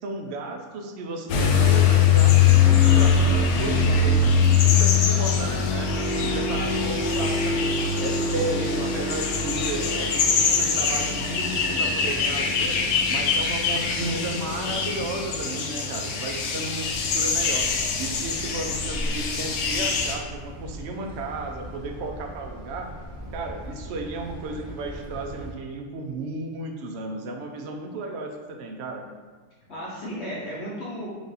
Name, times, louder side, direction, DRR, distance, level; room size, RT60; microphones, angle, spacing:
voice 1, 0.0-12.8 13.1-17.7 18.0-22.9 23.3-29.0, right 3 dB, 70° right, 2 dB, 0.6 m, -34 dB
sound 1, 1.3-20.1, left 6 dB, 75° left, 1.0 m, -22 dB
sound 2, 16.9-25.5, equal, 45° right, 1.2 m, -38 dB
voice 2, 29.7-31.1, equal, 55° left, -7 dB, 1.0 m, -35 dB
4.6 x 2.5 x 4.0 m, 1.4 s
omnidirectional pair, 1.6 m